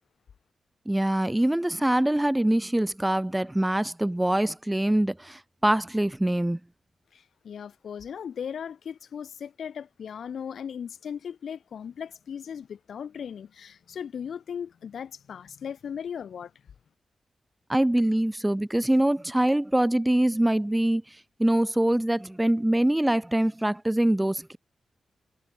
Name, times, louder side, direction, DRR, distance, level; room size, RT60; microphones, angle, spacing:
voice 1, 0.9-6.6 17.7-21.0 21.4-24.6, right 1 dB, 10° right, 0.5 m, -24 dB
voice 2, 7.1-16.5, left 7 dB, 80° left, 4.8 m, -37 dB
wide cardioid pair, 155°, 0 cm